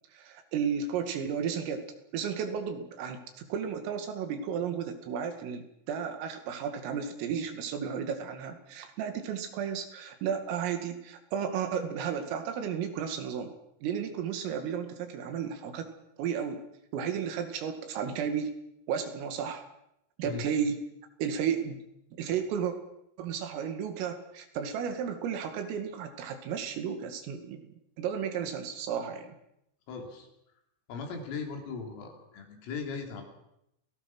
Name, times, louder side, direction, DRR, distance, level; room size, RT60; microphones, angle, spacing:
voice 1, 0.1-1.8 2.1-13.5 13.8-15.9 16.2-16.6 16.9-18.5 18.9-19.6 20.2-20.8 21.2-21.8 22.1-22.7 23.2-27.7 28.0-29.4, right 7 dB, 85° right, 6 dB, 4.9 m, -33 dB
voice 2, 29.9-30.3 30.9-33.3, left 5 dB, 80° left, 2 dB, 6.0 m, -38 dB
28.5 x 18.0 x 6.2 m, 0.81 s
omnidirectional pair, 5.8 m